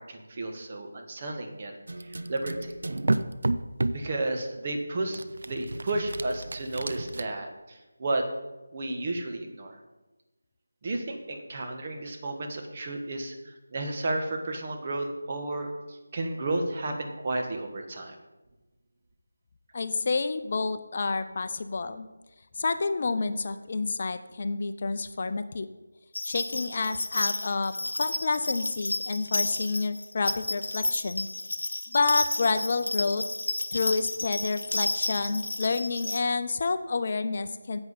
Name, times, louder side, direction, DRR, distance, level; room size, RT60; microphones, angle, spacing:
voice 1, 0.0-1.7 2.0-2.7 3.9-5.2 5.4-8.2 8.7-9.8 10.8-18.2, right 2 dB, 35° right, 3 dB, 1.3 m, -32 dB
sound 1, 1.9-4.1 5.1-7.2, right 2 dB, 70° right, 0.5 m, -31 dB
voice 2, 19.7-22.1 22.6-25.7 26.2-27.7 28.0-31.3 31.9-33.2 33.7-37.8, left 4 dB, 45° left, 10 dB, 0.5 m, -29 dB
sound 2, 26.1-36.2, left 2 dB, 75° left, 0.8 m, -32 dB
10.5 x 7.8 x 4.2 m, 1.1 s
figure-of-eight pair, 165°, 0 cm